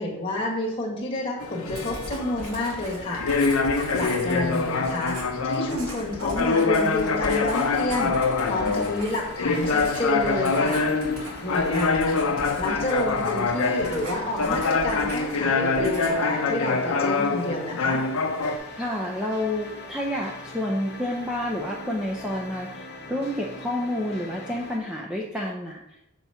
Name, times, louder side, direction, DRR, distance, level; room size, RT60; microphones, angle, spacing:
voice 1, 0.0-3.2 3.9-5.2 5.4-10.8 11.4-12.2 12.6-18.0, left 1 dB, 25° left, -3 dB, 1.6 m, -29 dB
sound 1, 1.4-18.6, left 4 dB, 70° left, 0.6 m, -25 dB
Writing, 1.7-15.5 15.7-16.3, right 1 dB, 75° right, 1.8 m, -40 dB
sound 2, 7.0-24.8, left 2 dB, 45° left, 1.0 m, -42 dB
voice 2, 18.8-25.8, left 1 dB, 5° right, -3 dB, 0.6 m, -29 dB
7.1 x 3.1 x 5.6 m, 0.81 s
head